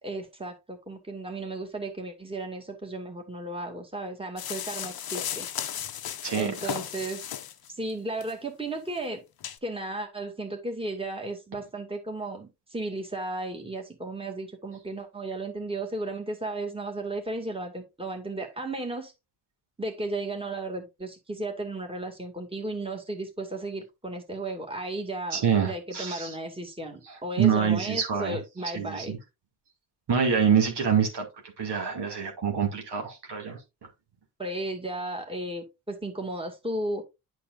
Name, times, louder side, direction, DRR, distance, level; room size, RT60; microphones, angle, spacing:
voice 1, 0.0-5.5 6.3-7.2 7.7-9.2 9.6-19.1 19.8-29.2 34.4-37.0, right 2 dB, 10° right, 2.2 m, -34 dB
sound 1, 4.4-7.7 8.2-8.3 8.9-9.0 9.4-9.6, left 10 dB, 55° left, 0.8 m, -35 dB
voice 2, 6.2-6.7 25.3-26.3 27.4-28.4 28.7-29.2 30.1-31.3 31.6-33.6, right 7 dB, 60° right, 2.4 m, -26 dB
8.5 x 6.3 x 2.5 m
supercardioid pair, 50°, 45 cm